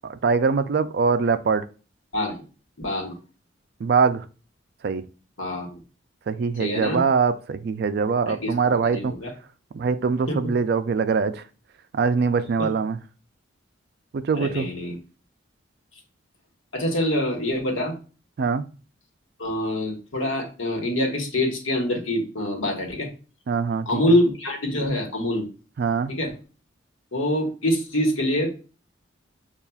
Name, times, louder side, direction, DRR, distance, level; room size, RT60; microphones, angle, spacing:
voice 1, 0.0-1.6 3.8-4.2 4.8-5.0 6.3-9.1 9.7-11.4 11.9-13.0 14.1-14.7 18.4-18.6 23.5-24.0 25.8-26.1, right 5 dB, 55° right, 11 dB, 0.3 m, -23 dB
voice 2, 2.1-2.4 2.8-3.2 5.4-5.8 6.6-7.0 8.3-9.3 10.3-10.5 12.6-12.7 14.3-15.0 16.7-17.9 19.4-23.1 23.9-25.5 26.1-26.3 27.1-28.5, left 1 dB, 85° left, 1 dB, 1.2 m, -25 dB
6.8 x 2.4 x 2.3 m, 0.35 s
head